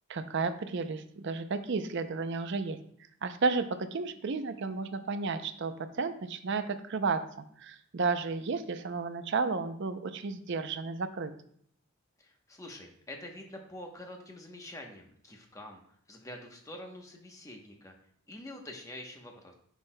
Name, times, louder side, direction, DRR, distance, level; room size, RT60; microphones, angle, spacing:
voice 1, 0.1-2.8 3.2-11.3, right 4 dB, 55° right, 9 dB, 0.5 m, -32 dB
voice 2, 12.2-15.8 16.1-17.9 18.3-19.5, left 1 dB, 15° left, 2 dB, 0.9 m, -46 dB
9.6 x 6.3 x 2.2 m, 0.64 s
head